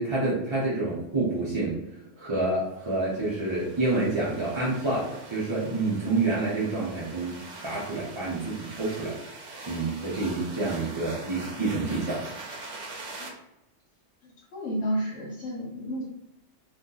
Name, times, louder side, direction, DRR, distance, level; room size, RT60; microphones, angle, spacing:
voice 1, 0.0-1.8 2.2-9.2 9.7-12.2, right 2 dB, 35° right, -5 dB, 0.5 m, -28 dB
sound 1, 2.8-13.3, right 3 dB, 85° right, 1.0 m, -43 dB
voice 2, 14.2-16.0, equal, 75° left, -6 dB, 1.2 m, -31 dB
2.7 x 2.3 x 3.7 m, 0.92 s
omnidirectional pair, 1.3 m